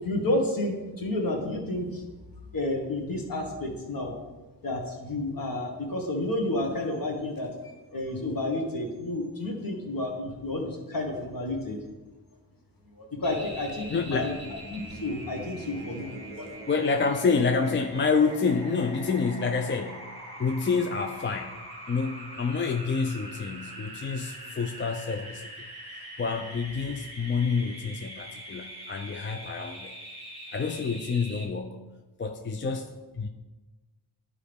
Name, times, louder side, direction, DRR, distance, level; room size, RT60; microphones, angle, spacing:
voice 1, 0.0-2.0 2.5-4.1 4.6-7.5 7.9-11.8 12.9-14.3 14.7-16.5, left 1 dB, 55° left, 0 dB, 1.6 m, -30 dB
sound 1, 13.2-31.4, right 1 dB, 15° left, 1.8 m, -43 dB
voice 2, 13.9-14.4 16.7-20.1 20.4-21.6 21.9-25.6 26.2-29.9 30.5-31.8 32.2-33.3, left 5 dB, 30° left, 6 dB, 0.4 m, -28 dB
12.0 x 4.8 x 3.5 m, 1.2 s
wide cardioid pair, 135°, 41 cm